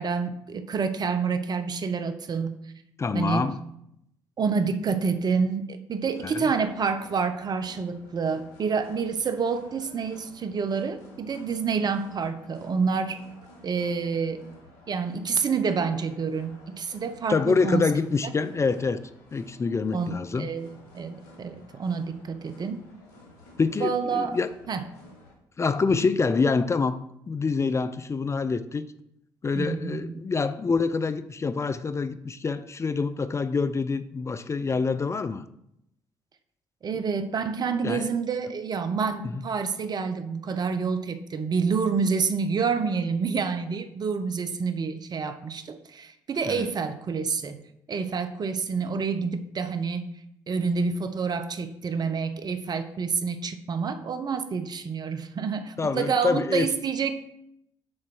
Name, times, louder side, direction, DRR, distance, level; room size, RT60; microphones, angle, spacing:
voice 1, 0.0-2.6 3.1-3.5 4.4-13.2 13.6-14.4 14.9-17.8 19.9-22.8 23.8-24.4 24.7-24.8 29.5-30.1 36.8-47.6 47.9-50.1 50.5-57.1, right 5 dB, 45° right, 0.8 m, -28 dB
voice 2, 3.0-3.6 6.2-6.5 17.3-20.5 23.6-24.5 25.6-27.0 27.3-28.9 29.4-35.4 37.8-38.1 39.3-39.4 46.5-46.7 55.8-56.7, left 4 dB, 30° left, 0.5 m, -26 dB
sound 1, 6.1-25.3, left 2 dB, 80° left, 1.6 m, -52 dB
6.4 x 4.4 x 6.1 m
hypercardioid pair, 55°, 10 cm